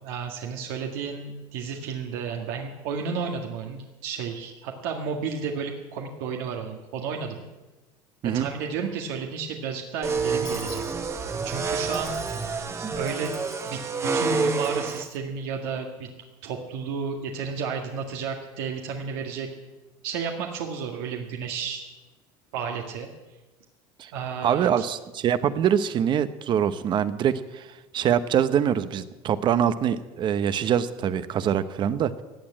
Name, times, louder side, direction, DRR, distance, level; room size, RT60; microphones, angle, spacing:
voice 1, 0.0-7.4 8.2-10.8 11.4-12.2 12.9-13.4 13.7-13.8 14.1-16.1 16.4-19.5 20.0-21.9 22.5-23.1 24.1-24.9, right 5 dB, 80° right, 2 dB, 1.8 m, -32 dB
sound 1, 10.0-15.0, right 4 dB, 25° right, 1.3 m, -28 dB
Dishes pots and pans / Coin (dropping), 10.4-11.6 11.9-12.5 13.1-13.8 14.6-15.2, left 6 dB, 30° left, 1.9 m, -46 dB
voice 2, 24.4-27.7 27.9-32.1, right 9 dB, 40° right, 13 dB, 0.9 m, -24 dB
16.5 x 8.6 x 8.9 m, 1.1 s
supercardioid pair, 120°, 12 cm